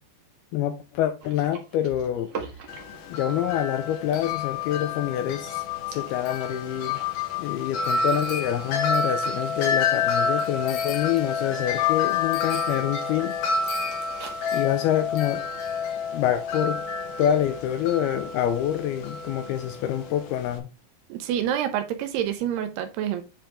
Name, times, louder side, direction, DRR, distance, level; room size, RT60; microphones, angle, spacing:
voice 1, 0.5-2.3 3.1-5.6 5.9-7.0 7.4-13.4 14.5-15.4 16.1-16.8 17.2-20.7, left 11 dB, 85° left, 2.3 m, -26 dB
sound 1, 1.2-5.6 5.9-10.0 10.2-10.6 11.2-12.1 13.0-13.2 13.5-15.4, right 5 dB, 60° right, 1.6 m, -45 dB
Wind chime, 2.7-20.6, left 5 dB, 65° left, 2.3 m, -29 dB
voice 2, 21.1-23.2, right 10 dB, 80° right, 2.6 m, -27 dB
9.0 x 5.0 x 3.5 m
omnidirectional pair, 5.1 m